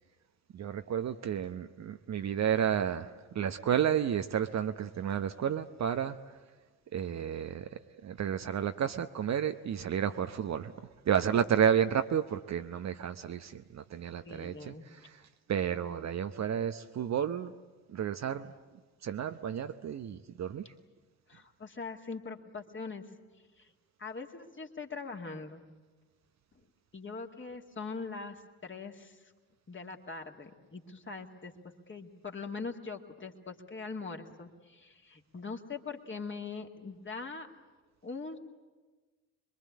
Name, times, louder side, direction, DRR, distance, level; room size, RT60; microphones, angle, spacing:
voice 1, 0.5-6.2 6.9-7.7 8.0-10.7 11.0-15.2 15.5-17.5 17.9-18.5 19.0-20.6, right 9 dB, 40° right, 0.9 m, -31 dB
voice 2, 14.2-14.9 21.3-23.0 23.6-23.7 24.0-25.6 26.5-26.6 26.9-29.2 29.7-31.5 31.9-37.5 38.0-38.4, left 4 dB, 30° left, 2.4 m, -42 dB
26.0 x 22.5 x 8.5 m
figure-of-eight pair, 45°, 42 cm